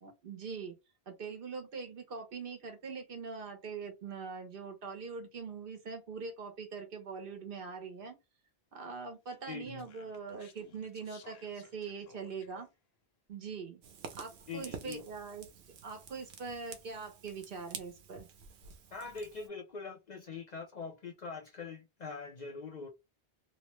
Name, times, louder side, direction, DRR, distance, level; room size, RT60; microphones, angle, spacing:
voice 1, 0.0-0.8 1.1-8.1 8.7-12.7 13.3-13.8 14.1-15.5 15.8-18.3, right 5 dB, 60° right, 0.9 m, -42 dB
Speech, 9.3-12.7, left 5 dB, 75° left, 0.9 m, -59 dB
voice 2, 9.5-9.9 14.5-15.0 18.9-22.9, left 4 dB, 55° left, 0.5 m, -43 dB
Fire, 13.8-19.5, right 6 dB, 90° right, 0.9 m, -49 dB
2.9 x 2.1 x 3.0 m
omnidirectional pair, 1.1 m